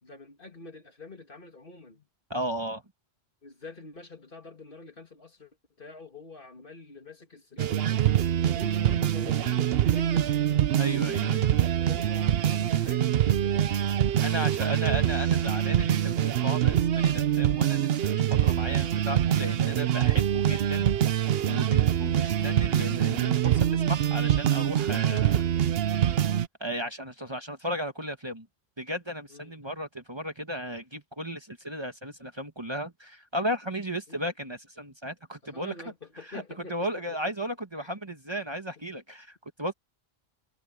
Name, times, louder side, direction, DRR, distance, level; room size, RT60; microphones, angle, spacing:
voice 1, 0.0-2.1 3.4-10.6 11.3-13.7 14.0-14.7 20.1-20.4 29.3-29.7 34.1-34.3 35.4-37.3 37.8-37.9, left 3 dB, 55° left, 2.6 m, -47 dB
voice 2, 2.3-2.8 10.8-11.5 14.2-20.9 21.2-25.4 26.6-28.5 28.8-35.7 36.3-36.4 36.7-39.7, equal, 25° right, 1.7 m, -35 dB
sound 1, 7.6-26.5, right 10 dB, 65° right, 0.9 m, -24 dB
omnidirectional pair, 1.1 m